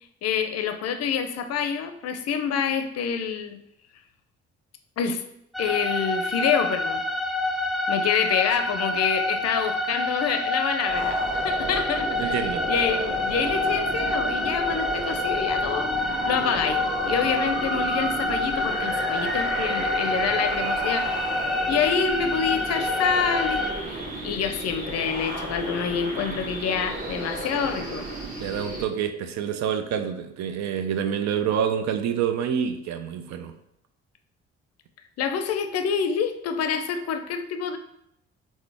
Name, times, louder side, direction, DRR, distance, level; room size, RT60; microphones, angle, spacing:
voice 1, 0.2-3.6 5.0-5.2 5.6-7.0 7.9-11.2 11.4-21.2 21.7-28.1 35.2-37.8, left 7 dB, 55° left, 8 dB, 0.5 m, -27 dB
sound 1, 5.5-23.7, left 2 dB, ahead, 0.4 m, -27 dB
sound 2, 10.8-28.8, right 2 dB, 30° right, 1.1 m, -33 dB
voice 2, 12.2-12.6 28.4-33.5, right 8 dB, 60° right, 7 dB, 0.5 m, -27 dB
3.8 x 2.0 x 3.3 m, 0.77 s
hypercardioid pair, 50°, 30 cm